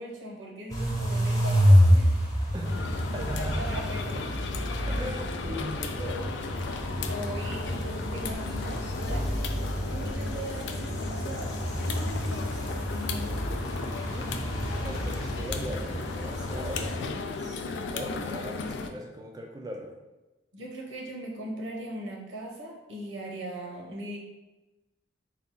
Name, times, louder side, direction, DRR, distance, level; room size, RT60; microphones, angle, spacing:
voice 1, 0.0-2.3 3.2-4.2 4.6-4.8 7.0-9.3 9.9-13.4 20.5-24.2, right 1 dB, 90° right, 0 dB, 0.9 m, -39 dB
sound 1, 0.7-17.0, equal, 20° left, 0.8 m, -28 dB
voice 2, 2.5-2.8 3.1-3.6 4.9-6.3 14.1-14.4 14.8-17.6 17.9-20.0, equal, 20° right, 2 dB, 0.3 m, -39 dB
sound 2, 2.6-18.9, left 4 dB, 65° left, 0.4 m, -36 dB
4.2 x 2.2 x 4.0 m, 1.1 s
head